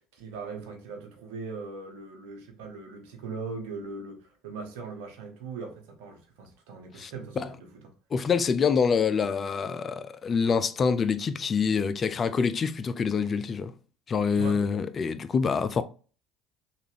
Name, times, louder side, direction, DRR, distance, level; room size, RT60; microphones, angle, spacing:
voice 1, 0.1-7.9 14.4-14.6, right 4 dB, 75° right, 1.0 m, -40 dB
voice 2, 8.1-13.7 14.1-15.8, left 5 dB, 40° left, 0.4 m, -26 dB
3.3 x 2.5 x 3.3 m
hypercardioid pair, 65°, 0 cm